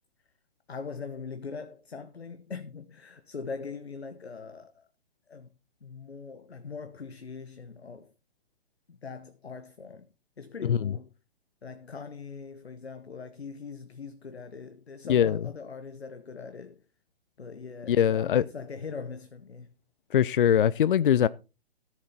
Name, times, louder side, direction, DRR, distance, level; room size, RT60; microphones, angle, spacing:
voice 1, 0.7-4.9 5.3-5.5 5.8-8.1 8.9-10.1 10.4-11.1 11.6-16.8 17.4-19.7, left 5 dB, 80° left, 1.1 m, -41 dB
voice 2, 10.6-10.9 15.1-15.4 17.9-18.4 20.1-21.3, left 9 dB, 55° left, 0.5 m, -22 dB
14.0 x 7.4 x 4.1 m
figure-of-eight pair, 135°, 31 cm